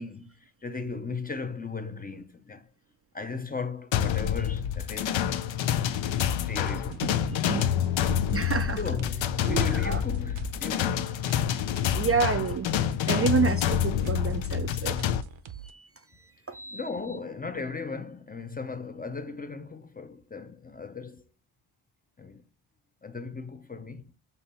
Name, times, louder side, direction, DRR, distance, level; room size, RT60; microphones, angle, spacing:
voice 1, 0.0-2.7 3.1-5.4 6.5-7.1 8.8-11.1 16.7-21.2 22.2-22.4 23.0-24.1, left 4 dB, 20° left, 0.5 m, -37 dB
sound 1, 3.9-15.2, left 10 dB, 70° left, 0.6 m, -27 dB
sound 2, 6.6-15.7, right 10 dB, 75° right, 0.9 m, -44 dB
voice 2, 7.0-7.6 8.1-8.8 9.5-10.0 11.9-12.7 13.1-15.0 15.5-15.9 16.2-16.8, right 6 dB, 35° right, 0.4 m, -29 dB
7.0 x 2.9 x 5.5 m
wide cardioid pair, 110°, 47 cm